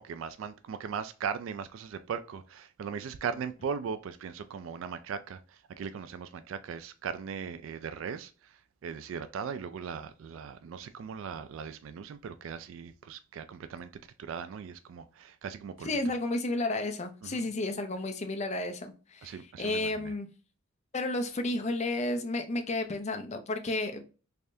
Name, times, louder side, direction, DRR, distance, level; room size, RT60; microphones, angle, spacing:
voice 1, 0.0-8.5 8.8-13.9 14.2-15.9 17.2-17.5 19.2-20.1, right 6 dB, 70° right, 0.3 m, -38 dB
voice 2, 15.8-20.3 20.9-24.0, left 2 dB, 35° left, 0.5 m, -32 dB
3.4 x 3.3 x 2.6 m
head